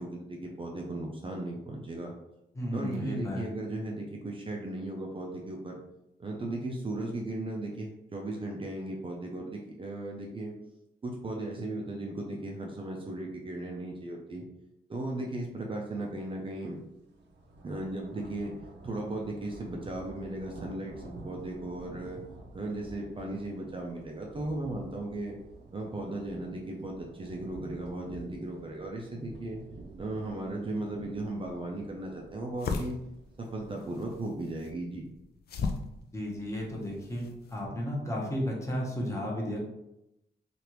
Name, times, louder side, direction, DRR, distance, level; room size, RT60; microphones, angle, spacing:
voice 1, 0.0-2.1 2.7-5.8 6.2-10.5 11.0-14.5 14.9-16.8 17.6-18.5 18.8-22.2 22.5-25.4 25.7-29.6 30.0-33.0 33.4-35.1, right 2 dB, 30° right, -1 dB, 0.4 m, -36 dB
voice 2, 2.5-3.4 36.1-39.6, equal, 15° left, -3 dB, 0.8 m, -33 dB
sound 1, 16.2-16.4 16.7-34.0, right 2 dB, 75° right, 0.6 m, -50 dB
sound 2, 31.3-37.6, left 4 dB, 65° left, 0.4 m, -39 dB
3.2 x 2.4 x 2.9 m, 0.87 s
wide cardioid pair, 135°, 18 cm